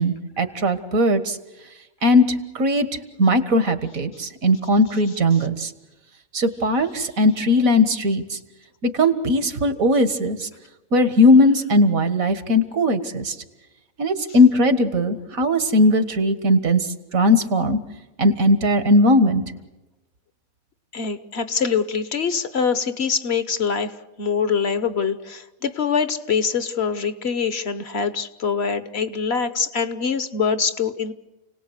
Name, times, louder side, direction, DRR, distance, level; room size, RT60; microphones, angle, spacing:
voice 1, 0.0-1.4 2.0-2.2 2.6-2.9 3.2-5.7 6.3-8.4 8.8-10.5 10.9-13.4 14.0-16.8 17.1-17.8 18.2-19.4, left 1 dB, 80° right, 10 dB, 2.0 m, -18 dB
voice 2, 20.9-23.9 24.2-31.1, left 6 dB, 50° left, 11 dB, 1.2 m, -24 dB
29.5 x 19.0 x 8.2 m, 1.1 s
omnidirectional pair, 1.4 m